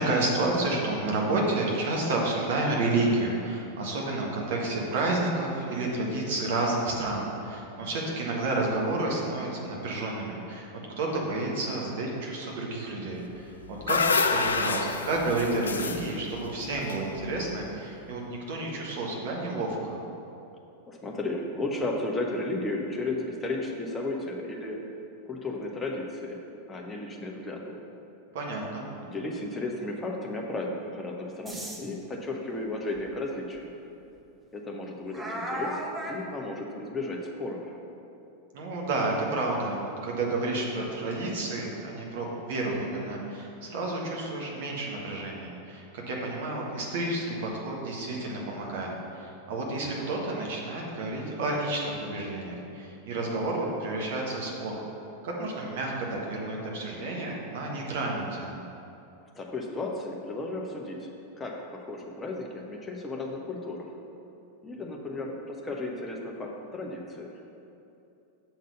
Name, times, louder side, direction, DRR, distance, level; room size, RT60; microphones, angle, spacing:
voice 1, 0.0-10.7 11.0-20.0 28.3-28.8 38.5-54.8 55.2-58.6, right 2 dB, 55° right, -2 dB, 1.4 m, -30 dB
sound 1, 13.4-17.7, left 5 dB, 70° left, 0.3 m, -29 dB
voice 2, 20.9-24.8 25.3-26.4 26.7-27.8 29.0-33.7 34.5-37.8 59.3-61.1 61.4-63.9 64.6-67.3, left 2 dB, 15° left, -1 dB, 1.0 m, -34 dB
sound 2, 31.5-31.8 33.0-33.1 33.6-33.7 35.1-36.2, equal, 10° right, 0.9 m, -34 dB
6.9 x 4.0 x 6.5 m, 2.8 s
figure-of-eight pair, 90°, 0 cm